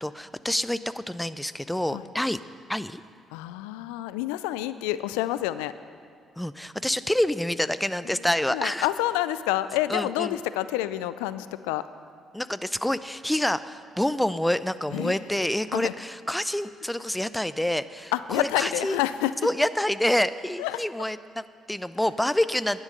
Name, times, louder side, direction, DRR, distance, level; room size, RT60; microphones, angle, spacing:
voice 1, 0.0-2.4 2.7-3.0 6.4-8.9 9.9-10.3 12.3-19.0 19.4-22.8, left 1 dB, 5° left, 14 dB, 0.5 m, -27 dB
voice 2, 3.3-5.7 8.1-8.2 8.5-11.8 14.9-15.2 15.7-15.9 18.1-19.3 20.6-20.8, left 14 dB, 80° left, 14 dB, 0.3 m, -28 dB
12.0 x 9.7 x 6.5 m, 2.1 s
hypercardioid pair, 45°, 0 cm